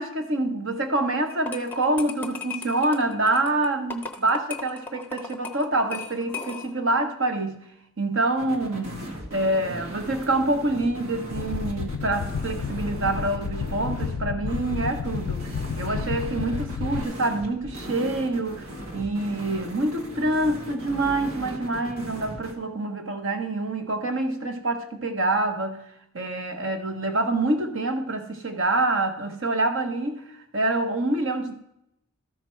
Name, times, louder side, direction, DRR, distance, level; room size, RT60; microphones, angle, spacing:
voice 1, 0.0-7.6 8.0-15.5 15.8-18.7 18.9-25.8 26.1-30.2 30.5-31.6, right 2 dB, 60° right, 6 dB, 1.2 m, -26 dB
sound 1, 1.3-6.9, left 5 dB, 10° left, 0.7 m, -37 dB
sound 2, 8.4-22.5, right 1 dB, 85° right, 1.6 m, -38 dB
sound 3, 11.3-17.0, left 6 dB, 85° left, 0.3 m, -31 dB
13.0 x 5.9 x 4.5 m, 0.77 s
head